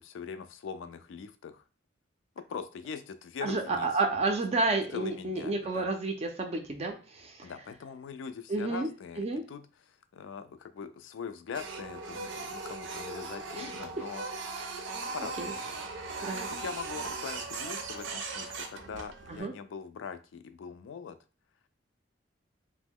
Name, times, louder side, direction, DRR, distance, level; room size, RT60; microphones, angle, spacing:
voice 1, 0.0-1.6 2.5-3.9 4.9-5.9 7.4-9.6 10.1-14.3 15.1-15.4 16.2-21.2, left 6 dB, 80° left, 10 dB, 0.3 m, -42 dB
voice 2, 3.4-7.5 8.5-8.9 9.2-9.4 13.5-13.7 14.6-14.7 15.4-15.5 16.2-16.5 19.3-19.5, right 3 dB, 35° right, 3 dB, 0.4 m, -31 dB
Printer, 11.5-19.4, right 3 dB, 90° right, 0.5 m, -38 dB
2.9 x 2.1 x 3.5 m, 0.35 s
head